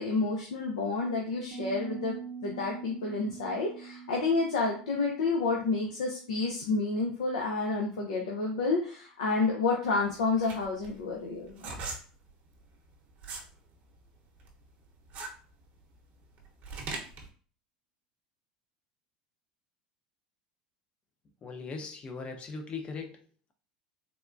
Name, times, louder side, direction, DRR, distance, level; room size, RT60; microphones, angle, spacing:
voice 1, 0.0-2.2 2.4-11.8, left 3 dB, 85° left, -1 dB, 0.5 m, -30 dB
Piano, 1.5-7.1, right 6 dB, 90° right, 0.5 m, -44 dB
sound 1, 9.9-13.5 13.9-17.3, right 4 dB, 45° right, 0.8 m, -41 dB
voice 2, 21.4-23.2, left 4 dB, 30° left, 5 dB, 0.6 m, -39 dB
3.5 x 2.2 x 2.5 m, 0.43 s
hypercardioid pair, 95°, 4 cm